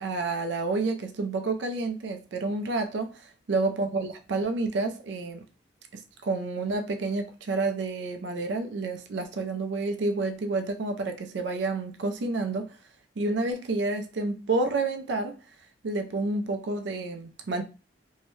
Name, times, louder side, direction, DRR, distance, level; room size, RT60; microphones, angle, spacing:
voice 1, 0.0-5.4 6.2-12.7 13.2-15.4 15.8-17.6, right 3 dB, 75° right, 0.4 m, -29 dB
2.7 x 2.1 x 3.0 m
head